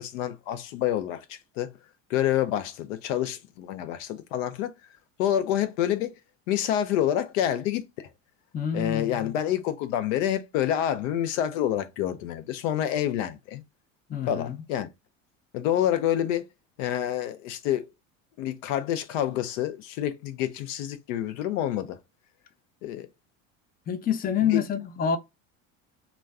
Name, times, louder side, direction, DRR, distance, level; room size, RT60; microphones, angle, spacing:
voice 1, 0.0-1.7 2.1-4.7 5.2-6.2 6.5-8.1 8.7-13.6 14.3-14.9 15.5-16.5 16.8-17.8 18.4-22.0 22.8-23.1 24.4-24.6, left 11 dB, 80° left, 0.6 m, -28 dB
voice 2, 8.5-9.3 14.1-14.5 23.9-25.2, left 8 dB, 25° left, 0.5 m, -27 dB
2.3 x 2.2 x 3.3 m
supercardioid pair, 90°, 38 cm